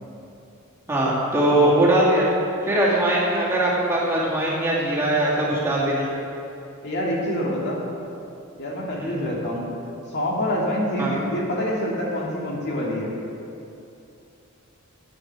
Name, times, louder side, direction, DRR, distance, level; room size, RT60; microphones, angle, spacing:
voice 1, 0.9-2.3 2.6-6.1 9.0-9.2 11.0-11.1, right 1 dB, 10° right, -7 dB, 2.4 m, -21 dB
voice 2, 6.8-7.8 8.6-9.7 10.1-13.1, equal, 55° left, -3 dB, 2.2 m, -26 dB
16.0 x 9.1 x 4.7 m, 2.8 s
head